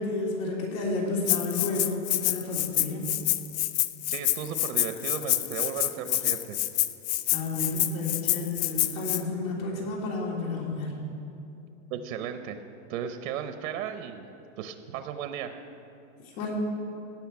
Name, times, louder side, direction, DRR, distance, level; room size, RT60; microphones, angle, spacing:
voice 1, 0.0-3.1 7.3-11.0 16.2-16.5, left 3 dB, 90° left, -2 dB, 3.2 m, -31 dB
Rattle (instrument), 1.3-9.2, left 14 dB, 60° left, 0.6 m, -27 dB
voice 2, 4.1-6.6 11.9-12.6 12.9-14.3 14.6-15.6, right 8 dB, 85° right, 8 dB, 1.0 m, -35 dB
16.5 x 5.8 x 8.3 m, 2.7 s
supercardioid pair, 170°, 40 cm